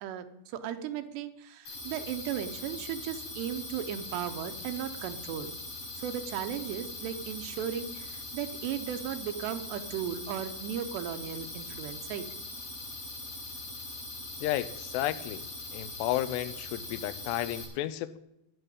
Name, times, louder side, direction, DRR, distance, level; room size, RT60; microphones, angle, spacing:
voice 1, 0.0-5.5 5.9-12.3, right 9 dB, 85° right, 8 dB, 3.0 m, -36 dB
sound 1, 1.7-17.7, left 2 dB, 45° left, 6.7 m, -41 dB
voice 2, 14.4-15.4 15.7-18.2, left 14 dB, 90° left, 14 dB, 2.8 m, -32 dB
11.0 x 8.8 x 8.6 m, 0.86 s
omnidirectional pair, 4.8 m